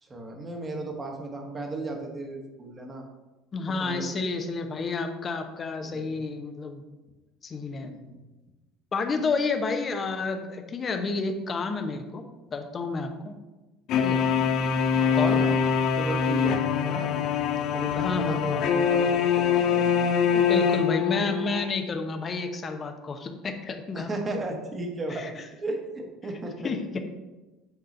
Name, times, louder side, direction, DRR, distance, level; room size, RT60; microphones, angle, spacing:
voice 1, 0.0-3.0 3.8-4.2 5.8-6.2 7.7-8.2 15.1-15.6 15.9-17.1 17.7-20.4 23.9-26.7, right 2 dB, 30° right, 2 dB, 1.4 m, -35 dB
voice 2, 3.5-6.8 7.4-7.9 8.9-12.2 12.5-13.3 14.0-14.2 15.1-15.4 17.9-18.7 20.4-24.1 25.1-25.3 26.6-27.0, left 3 dB, 35° left, 6 dB, 0.9 m, -30 dB
sound 1, 13.9-21.6, left 7 dB, 55° left, 0.5 m, -24 dB
8.0 x 3.8 x 4.3 m, 1.1 s
figure-of-eight pair, 65°, 0 cm